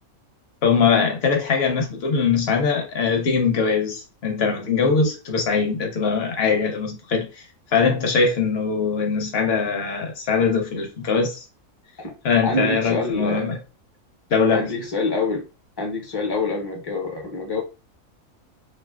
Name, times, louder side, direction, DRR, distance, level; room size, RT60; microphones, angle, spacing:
voice 1, 0.6-7.4 7.7-11.4 12.2-13.6 14.3-14.7, left 5 dB, 55° left, 0.8 m, -21 dB
voice 2, 12.4-13.6 14.5-15.4 15.8-17.6, left 2 dB, 30° left, 0.5 m, -26 dB
3.1 x 2.5 x 2.3 m
omnidirectional pair, 1.5 m